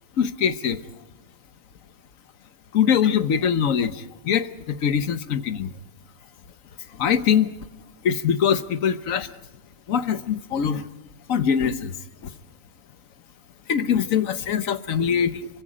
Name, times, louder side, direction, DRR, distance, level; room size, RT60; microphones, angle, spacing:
voice 1, 0.2-0.8 2.7-5.7 6.9-7.5 8.0-9.3 9.9-10.9 11.3-11.9 12.2-12.3 13.7-15.5, left 8 dB, 60° left, 11 dB, 1.4 m, -23 dB
26.5 x 24.5 x 5.0 m, 1.0 s
omnidirectional pair, 1.6 m